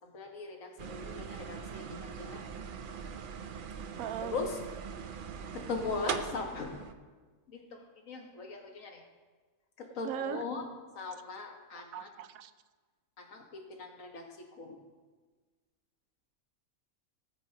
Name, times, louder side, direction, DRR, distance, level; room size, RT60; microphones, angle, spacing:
voice 1, 0.0-2.4 4.2-4.6 5.5-6.7 7.5-9.0 9.8-10.6 10.9-12.1 13.2-14.8, left 4 dB, 70° left, 2 dB, 1.7 m, -39 dB
sound 1, 0.8-6.9, right 6 dB, 55° right, 0.6 m, -41 dB
voice 2, 4.0-4.4 10.0-10.5 11.9-12.5, right 9 dB, 85° right, 12 dB, 1.0 m, -38 dB
17.0 x 9.1 x 2.9 m, 1.4 s
omnidirectional pair, 1.4 m